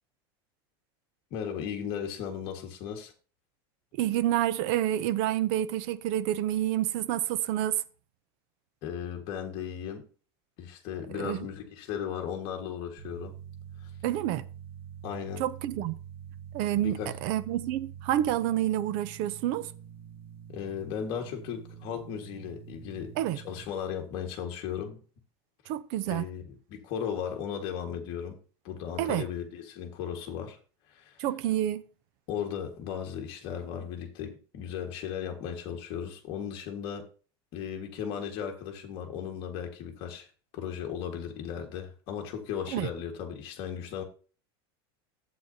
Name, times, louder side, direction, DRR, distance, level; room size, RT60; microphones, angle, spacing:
voice 1, 1.3-3.1 8.8-10.0 10.6-13.3 15.0-15.4 15.7-15.9 16.7-17.1 20.5-25.0 26.1-28.4 28.6-30.6 30.9-31.2 32.3-37.1 37.5-40.3 40.5-44.0, left 8 dB, 40° left, 1.7 m, -36 dB
voice 2, 4.0-7.8 11.1-11.5 14.0-14.5 15.4-16.0 16.5-19.7 23.2-23.4 25.7-26.3 29.0-29.2 31.2-31.8 42.7-42.9, right 12 dB, 45° right, 0.5 m, -28 dB
sound 1, 13.0-23.6, right 9 dB, 20° right, 2.0 m, -46 dB
11.5 x 8.1 x 2.8 m
supercardioid pair, 175°, 13 cm